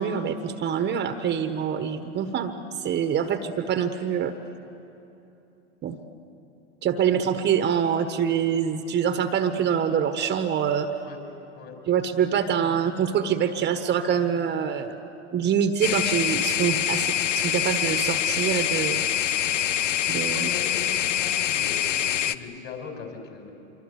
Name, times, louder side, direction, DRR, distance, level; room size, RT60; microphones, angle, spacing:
voice 1, 0.0-2.5 2.8-4.3 5.8-6.0 6.8-10.9 11.9-15.0 15.3-19.0 20.1-20.5, right 8 dB, 30° right, 9 dB, 1.2 m, -25 dB
sound 1, 15.8-22.3, left 10 dB, 80° left, 0.8 m, -25 dB
voice 2, 20.3-23.5, left 5 dB, 40° left, 3 dB, 5.4 m, -39 dB
26.0 x 23.5 x 8.2 m, 2.9 s
hypercardioid pair, 110°, 37 cm